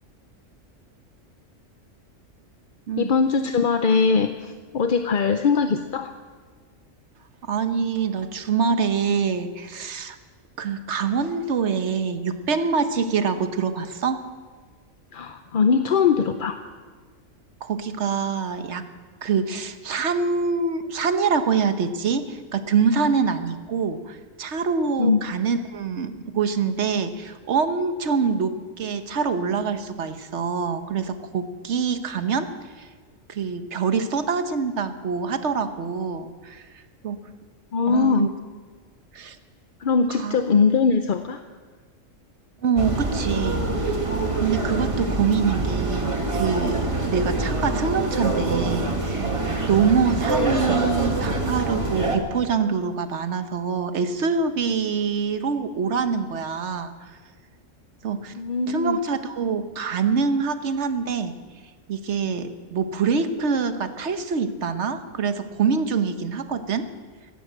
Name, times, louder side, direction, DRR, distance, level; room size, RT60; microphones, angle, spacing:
voice 1, 3.0-6.1 15.1-16.6 25.0-25.2 37.7-38.3 39.8-41.4 58.3-59.0, left 5 dB, 50° left, 7 dB, 0.7 m, -21 dB
voice 2, 7.4-10.2 10.6-14.3 17.6-18.9 19.2-32.9 33.3-36.6 37.0-37.3 37.9-38.3 39.1-39.4 40.2-40.4 42.6-44.0 44.4-49.3 49.7-57.2 58.0-58.3 58.7-61.4 61.9-66.9, right 5 dB, 60° right, 9 dB, 1.3 m, -25 dB
sound 1, 42.8-52.2, right 2 dB, 25° right, 1.6 m, -25 dB
16.0 x 12.0 x 7.6 m, 1.5 s
omnidirectional pair, 1.4 m